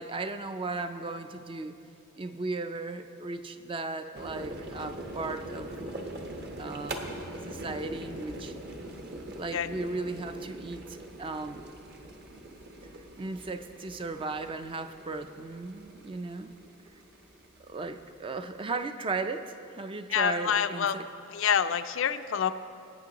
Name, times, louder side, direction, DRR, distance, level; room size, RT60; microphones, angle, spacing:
voice 1, 0.0-1.8 2.2-5.8 6.6-7.0 7.4-8.5 9.3-11.7 13.2-16.5 17.6-21.1, right 3 dB, 25° right, 8 dB, 0.4 m, -36 dB
sound 1, 4.1-18.6, right 1 dB, 50° right, 1.1 m, -42 dB
voice 2, 20.1-20.9 21.3-22.5, left 7 dB, 60° left, 11 dB, 0.4 m, -27 dB
21.5 x 9.0 x 2.9 m, 2.7 s
head